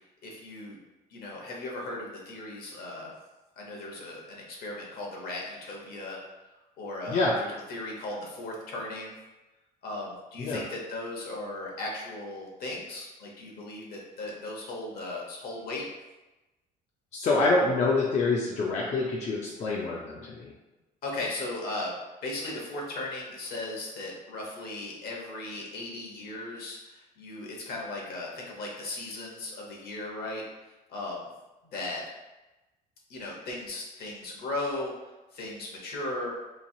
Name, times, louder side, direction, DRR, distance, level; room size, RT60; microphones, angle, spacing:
voice 1, 0.2-0.8 1.1-3.1 3.6-6.2 6.8-9.1 9.8-15.8 21.0-21.9 22.2-30.4 30.9-31.3 31.7-32.0 33.1-34.9 35.3-36.3, left 2 dB, 65° left, -2 dB, 0.9 m, -37 dB
voice 2, 17.1-20.5, left 3 dB, 40° left, -4 dB, 0.5 m, -26 dB
3.1 x 2.4 x 2.7 m, 1.1 s
cardioid pair, 110°, 17 cm